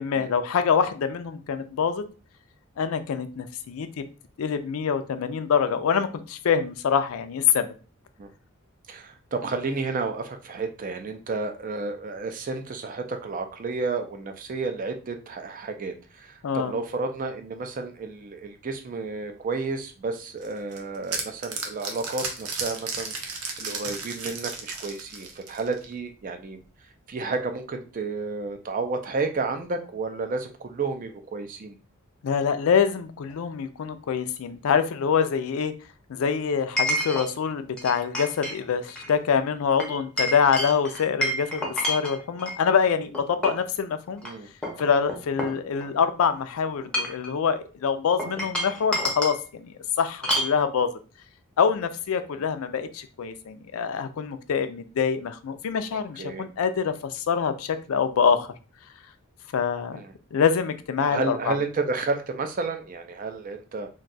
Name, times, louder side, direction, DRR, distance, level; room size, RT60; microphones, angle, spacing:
voice 1, 0.0-2.0 2.8-4.0 4.4-7.7 16.4-16.7 32.2-35.7 36.1-44.2 44.8-50.9 51.6-58.5 59.5-60.0 60.3-61.6, left 6 dB, 70° left, 10 dB, 0.4 m, -25 dB
voice 2, 8.9-31.8 44.2-44.5 52.3-52.4 56.2-56.4 59.9-60.1 61.0-63.9, right 3 dB, 35° right, 7 dB, 0.4 m, -31 dB
sound 1, 20.4-25.9, right 4 dB, 80° right, 0.7 m, -34 dB
Chink clink, 33.3-33.4 36.8-37.3 37.8-38.6 38.9-39.1 39.8-42.6 43.1-43.7 44.2-44.3 44.6-46.0 46.7-47.3 48.2-49.4 50.2-50.6, equal, 5° left, 0.6 m, -29 dB
2.6 x 2.2 x 3.9 m, 0.35 s
head